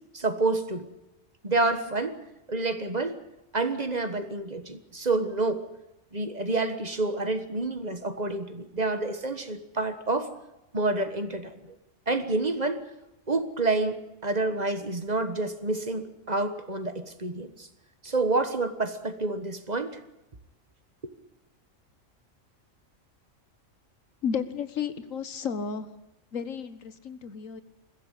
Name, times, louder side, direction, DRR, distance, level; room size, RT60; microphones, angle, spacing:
voice 1, 0.1-0.9 1.4-2.2 2.5-3.2 3.5-5.7 6.1-10.3 10.7-11.7 12.1-12.8 13.3-17.7 18.0-20.0, right 3 dB, 35° right, 9 dB, 1.5 m, -28 dB
voice 2, 24.2-26.0 26.3-27.6, left 6 dB, 85° left, 12 dB, 1.7 m, -32 dB
22.0 x 15.5 x 10.0 m, 0.93 s
omnidirectional pair, 1.3 m